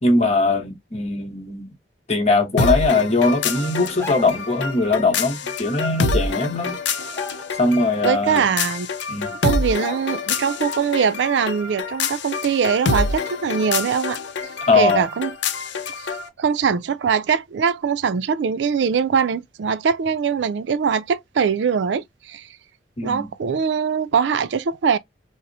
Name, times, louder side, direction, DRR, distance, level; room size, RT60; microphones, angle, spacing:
voice 1, 0.0-1.7 2.1-6.8 7.6-8.5 9.1-9.3 14.7-15.0 23.0-23.3, left 3 dB, 35° left, 0.9 m, -20 dB
sound 1, 2.6-16.3, left 3 dB, 85° left, 0.6 m, -26 dB
sound 2, 3.8-4.5 6.0-6.1 6.4-6.6 7.0-7.9 8.3-8.4 9.1-9.2 9.8-10.4 10.8-10.9, left 3 dB, 15° left, 0.5 m, -37 dB
voice 2, 8.0-8.9 9.4-14.2 14.7-15.3 16.0-16.1 16.4-22.5 23.0-25.0, right 6 dB, 85° right, 0.4 m, -22 dB
4.1 x 2.0 x 2.5 m
head